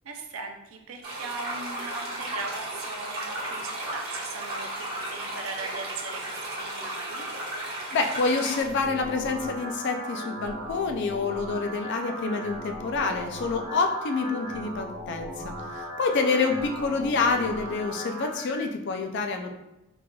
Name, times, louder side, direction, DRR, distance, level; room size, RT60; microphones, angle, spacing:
voice 1, 0.0-7.3 16.3-16.4, right 4 dB, 70° right, 3 dB, 0.5 m, -39 dB
sound 1, 1.0-8.6, right 1 dB, 45° right, 1.1 m, -34 dB
voice 2, 7.9-15.3 15.7-19.5, left 4 dB, 55° left, 4 dB, 0.4 m, -27 dB
sound 2, 8.6-18.6, equal, 25° right, 1.1 m, -38 dB
3.8 x 3.2 x 2.3 m, 0.95 s
head